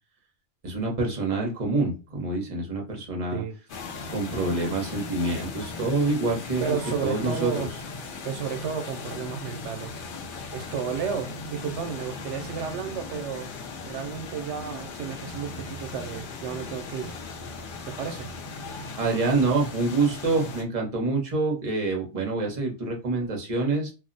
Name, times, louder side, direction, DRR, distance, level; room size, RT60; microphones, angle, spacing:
voice 1, 0.6-3.4 4.1-6.8 7.0-7.5 19.0-23.9, right 3 dB, 35° right, 0.9 m, -26 dB
sound 1, 3.7-20.6, left 3 dB, 60° left, 0.6 m, -38 dB
voice 2, 6.6-7.7 8.2-10.0 10.5-13.5 13.8-17.1 17.9-18.3, right 7 dB, 90° right, 0.9 m, -32 dB
2.5 x 2.0 x 3.8 m
omnidirectional pair, 1.2 m